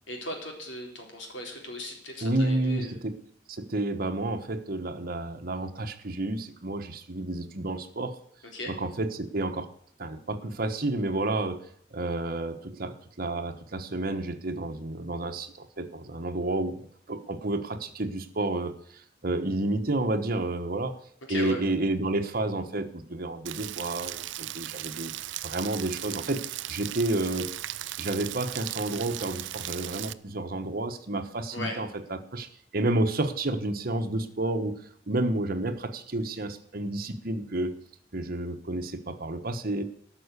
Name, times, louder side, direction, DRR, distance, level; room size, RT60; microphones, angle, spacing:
voice 1, 0.1-3.0 8.5-8.7 21.3-21.6 31.5-31.8, left 1 dB, 75° left, 1 dB, 3.8 m, -37 dB
voice 2, 2.2-3.1 3.5-8.2 8.7-9.7 10.0-11.6 11.9-16.8 17.1-21.0 21.3-25.1 25.4-26.4 26.7-27.5 28.0-31.9 32.3-37.7 38.1-39.8, right 2 dB, 50° right, 7 dB, 1.2 m, -30 dB
Rain, 23.5-30.1, right 14 dB, 70° right, 0.5 m, -37 dB
13.0 x 6.3 x 8.2 m, 0.66 s
head